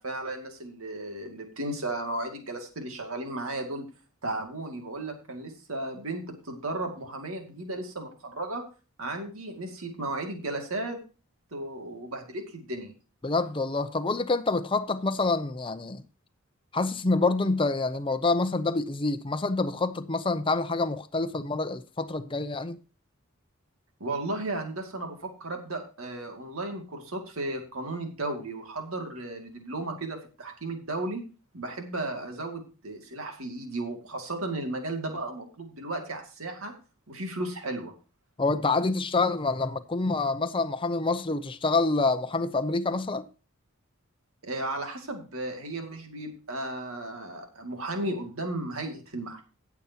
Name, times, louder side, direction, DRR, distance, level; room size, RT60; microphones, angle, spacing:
voice 1, 0.0-3.8 4.2-8.6 9.0-11.0 11.5-12.9 24.0-31.2 31.5-36.7 37.1-37.9 44.4-49.4, right 2 dB, 80° right, 2.3 m, -34 dB
voice 2, 13.2-16.0 16.7-22.8 38.4-43.3, left 3 dB, 25° left, 0.6 m, -27 dB
17.5 x 7.0 x 2.9 m
head